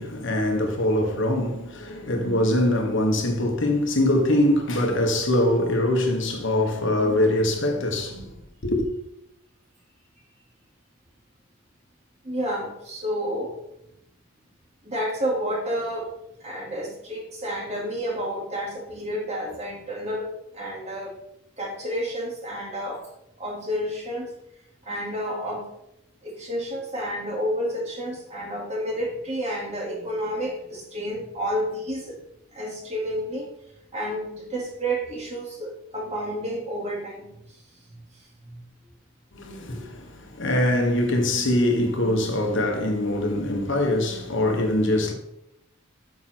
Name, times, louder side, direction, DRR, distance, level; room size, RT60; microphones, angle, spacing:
voice 1, 0.0-8.3 8.6-8.9 39.3-45.1, left 1 dB, 60° left, 1.5 m, -23 dB
voice 2, 12.2-13.6 14.8-16.1 16.4-20.3 20.5-21.1 21.6-23.1 23.4-24.3 24.8-25.7 26.2-32.2 32.5-33.5 33.9-37.6 37.9-38.0 38.4-38.6, equal, 30° right, 2.7 m, -30 dB
8.8 x 7.1 x 4.5 m
head